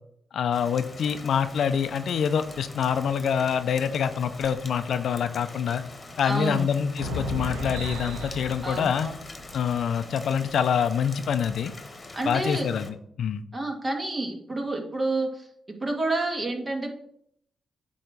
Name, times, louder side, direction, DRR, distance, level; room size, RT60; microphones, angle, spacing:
voice 1, 0.3-5.8 6.2-9.1 9.5-11.7 12.3-13.4, left 7 dB, 70° left, 11 dB, 0.5 m, -26 dB
Rain, 0.5-12.9, left 2 dB, 35° left, 1.3 m, -44 dB
sound 1, 0.9-4.7 5.1-5.2 5.5-6.0 6.7-10.1 10.9-11.0 11.4-11.5, equal, 85° right, 1.1 m, -38 dB
voice 2, 6.2-6.7 8.6-9.1 12.1-12.7 13.5-15.5 15.8-16.9, right 2 dB, 30° right, 2 dB, 2.1 m, -29 dB
8.8 x 3.1 x 6.6 m, 0.69 s
supercardioid pair, 50°, 0 cm